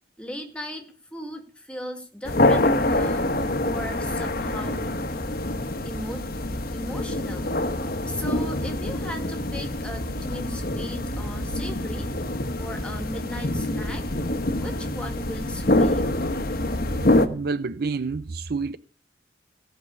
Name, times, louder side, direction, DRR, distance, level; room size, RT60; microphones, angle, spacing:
voice 1, 0.2-4.9 5.8-6.3 6.7-7.5 8.1-12.1 12.6-14.0 14.5-16.1, equal, 5° left, 2.1 m, -37 dB
sound 1, 2.2-17.3, left 1 dB, 55° left, 1.2 m, -25 dB
voice 2, 17.0-18.8, right 4 dB, 55° right, 0.6 m, -29 dB
16.5 x 6.2 x 8.7 m
head